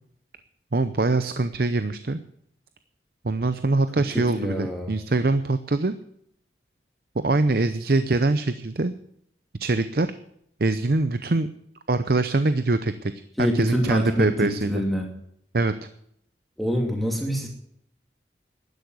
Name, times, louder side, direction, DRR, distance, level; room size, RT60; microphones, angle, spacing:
voice 1, 0.7-2.2 3.2-6.0 7.2-8.9 9.6-10.1 10.6-11.5 11.9-13.1 13.4-14.8 15.5-15.7, right 2 dB, 55° right, 11 dB, 0.7 m, -23 dB
voice 2, 4.1-5.0 13.4-15.1 16.6-17.5, equal, ahead, 0 dB, 2.6 m, -26 dB
12.0 x 10.5 x 8.0 m, 0.71 s
head